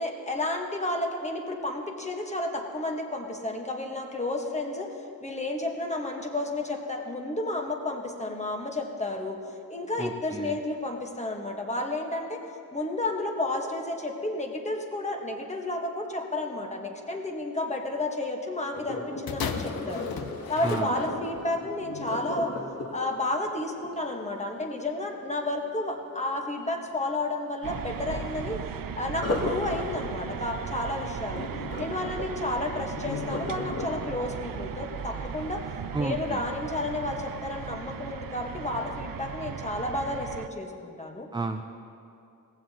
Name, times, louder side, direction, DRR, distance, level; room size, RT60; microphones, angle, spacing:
voice 1, 0.0-4.9 5.2-9.4 9.7-12.4 12.7-20.0 20.5-22.5 22.9-28.6 28.9-31.5 31.8-35.6 36.0-41.3, left 2 dB, 20° left, 2 dB, 1.2 m, -31 dB
voice 2, 10.0-10.6 20.6-20.9 35.9-36.5 41.3-41.6, right 3 dB, 15° right, 6 dB, 0.4 m, -32 dB
Sink (filling or washing), 18.7-24.7 29.1-36.1 36.6-36.9 37.4-37.5, left 2 dB, 45° left, 1.4 m, -36 dB
sound 1, 19.3-21.5 22.3-22.4, left 6 dB, 80° left, 0.8 m, -36 dB
sound 2, 27.6-40.5, right 8 dB, 65° right, 0.6 m, -37 dB
18.5 x 15.0 x 2.9 m, 2.6 s
wide cardioid pair, 135°, 36 cm